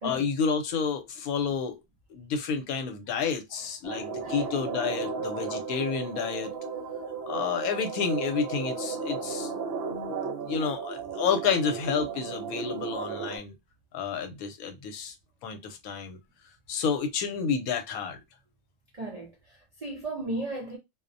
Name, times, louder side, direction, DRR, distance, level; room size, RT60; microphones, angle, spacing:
voice 1, 0.0-1.8 2.1-6.5 7.3-9.5 10.1-13.5 13.9-15.1 15.4-16.2 16.7-18.2, left 6 dB, 80° left, 1.1 m, -30 dB
sound 1, 3.8-13.4, right 5 dB, 55° right, 0.8 m, -34 dB
voice 2, 3.9-4.7 18.9-20.8, right 2 dB, 75° right, 0.3 m, -36 dB
2.5 x 2.0 x 2.5 m
omnidirectional pair, 1.5 m